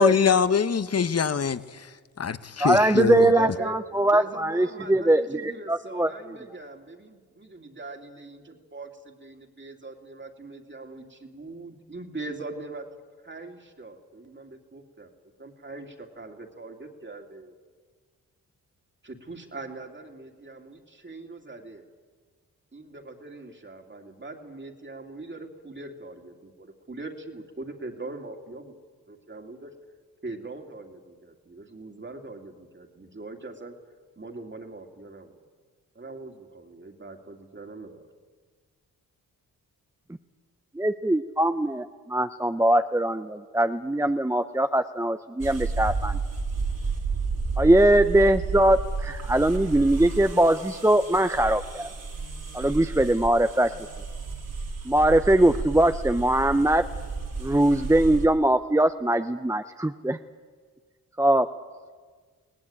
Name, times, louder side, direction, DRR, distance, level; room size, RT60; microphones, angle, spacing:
voice 1, 0.0-3.3, left 6 dB, 45° left, 1.0 m, -24 dB
voice 2, 2.6-6.1 40.7-46.2 47.6-51.9 52.5-53.7 54.8-56.8 57.4-60.2 61.2-61.5, right 1 dB, 10° right, 0.7 m, -21 dB
voice 3, 3.3-12.9 13.2-15.1 15.4-17.5 19.0-21.8 22.7-28.7 29.1-29.7 30.2-33.7 34.2-35.4 35.9-38.1, right 2 dB, 30° right, 2.7 m, -41 dB
sound 1, 45.4-58.3, right 4 dB, 60° right, 3.9 m, -32 dB
21.5 x 18.0 x 8.9 m
cardioid pair, 65°, 36 cm